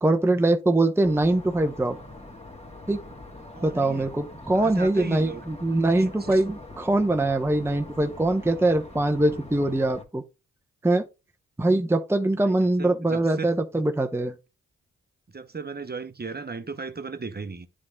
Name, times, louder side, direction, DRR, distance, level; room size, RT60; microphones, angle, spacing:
voice 1, 0.0-2.0 2.9-3.0 3.6-10.2 10.8-11.1 11.6-14.3, right 2 dB, 5° right, 0.8 m, -23 dB
sound 1, 1.0-10.0, left 2 dB, 20° left, 2.1 m, -43 dB
voice 2, 3.5-4.1 4.5-5.4 6.0-6.4 12.4-12.5 12.8-13.5 15.3-17.7, right 4 dB, 30° right, 1.0 m, -36 dB
9.6 x 3.7 x 3.8 m
supercardioid pair, 50°, 34 cm